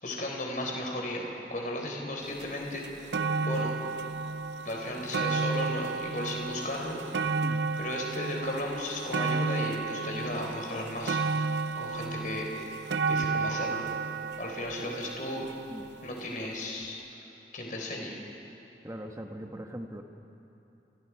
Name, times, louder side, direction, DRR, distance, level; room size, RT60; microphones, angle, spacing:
voice 1, 0.0-2.8 3.4-3.7 4.6-7.0 7.8-11.2 11.8-12.5 13.1-13.9 14.4-15.4 16.0-17.0 17.5-18.2, left 1 dB, 45° left, 0 dB, 4.1 m, -35 dB
sound 1, 2.4-2.5 2.8-16.0 16.8-16.9, right 4 dB, 80° right, 0.7 m, -32 dB
voice 2, 18.8-20.0, equal, 15° right, 4 dB, 1.4 m, -40 dB
29.0 x 27.5 x 4.8 m, 2.9 s
head